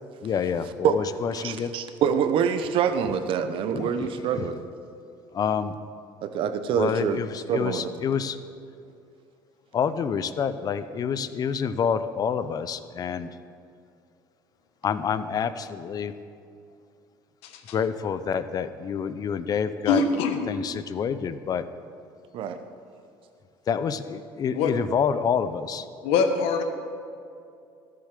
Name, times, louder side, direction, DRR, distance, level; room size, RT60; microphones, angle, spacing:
voice 1, 0.2-1.7 3.7-4.1 4.3-4.5 5.3-5.7 6.7-8.4 9.7-13.3 14.8-16.1 17.7-20.0 20.5-21.6 23.7-25.9, left 7 dB, 40° left, 12 dB, 0.6 m, -28 dB
voice 2, 1.4-4.6 6.2-7.2 7.5-7.9 22.3-22.6, right 7 dB, 60° right, 9 dB, 0.9 m, -25 dB
voice 3, 19.9-20.4 24.5-24.7 26.0-26.6, left 5 dB, 80° left, 6 dB, 1.3 m, -23 dB
13.0 x 7.7 x 6.7 m, 2.5 s
cardioid pair, 105°, 10 cm